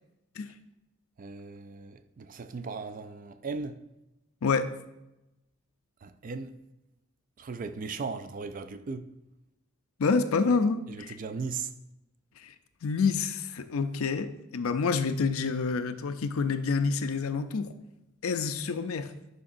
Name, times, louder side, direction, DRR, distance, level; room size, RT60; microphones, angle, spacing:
voice 1, 1.2-3.8 6.0-6.6 7.4-9.1 10.9-11.7, right 4 dB, 40° right, 0.3 m, -37 dB
voice 2, 10.0-11.2 12.4-12.5 12.8-17.7 18.2-19.1, left 4 dB, 85° left, 0.5 m, -28 dB
11.0 x 5.2 x 2.6 m
head